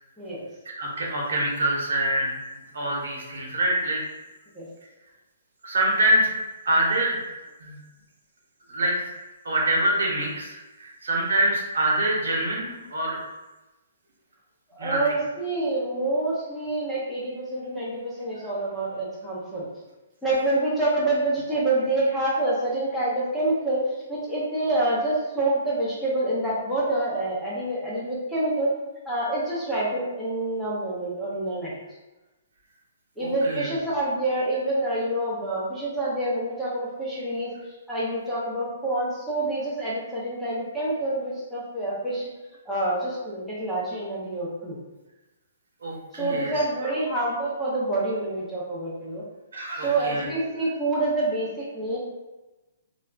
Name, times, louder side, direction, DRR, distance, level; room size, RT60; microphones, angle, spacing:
voice 1, 0.8-2.3 2.7-4.0 5.6-6.3 6.6-7.2 7.6-7.8 8.7-8.9 9.4-13.2 14.8-15.1 33.2-33.7 45.8-46.9 49.5-50.3, right 1 dB, 85° right, -2 dB, 1.1 m, -25 dB
voice 2, 14.7-19.7 20.2-23.8 24.1-28.7 29.1-31.8 33.2-37.5 37.9-42.2 42.7-44.8 46.1-49.2 49.8-52.0, right 2 dB, ahead, -10 dB, 0.7 m, -27 dB
4.1 x 2.2 x 2.4 m, 1.1 s
hypercardioid pair, 165°, 0 cm